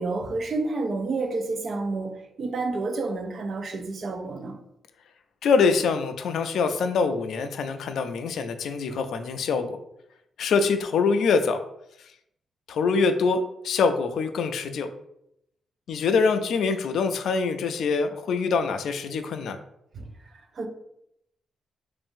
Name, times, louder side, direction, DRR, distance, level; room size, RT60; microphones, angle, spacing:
voice 1, 0.0-4.6 19.9-20.1 20.6-20.7, right 3 dB, 50° right, 0.5 m, -29 dB
voice 2, 5.4-9.8 10.4-11.6 12.7-14.9 15.9-19.6, left 5 dB, 75° left, 0.3 m, -24 dB
2.5 x 2.5 x 3.6 m
cardioid pair, 100°, 0 cm